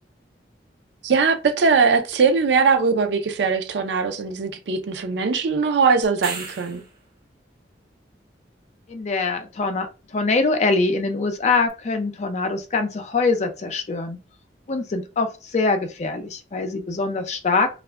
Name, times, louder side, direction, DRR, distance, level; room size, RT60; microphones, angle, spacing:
voice 1, 1.0-6.8, right 5 dB, 80° right, 0.5 m, -20 dB
sound 1, 6.0-7.0 11.7-11.8, right 4 dB, 55° right, 1.0 m, -34 dB
voice 2, 8.9-14.2 14.7-17.7, left 3 dB, 40° left, 0.4 m, -23 dB
2.3 x 2.1 x 3.3 m
head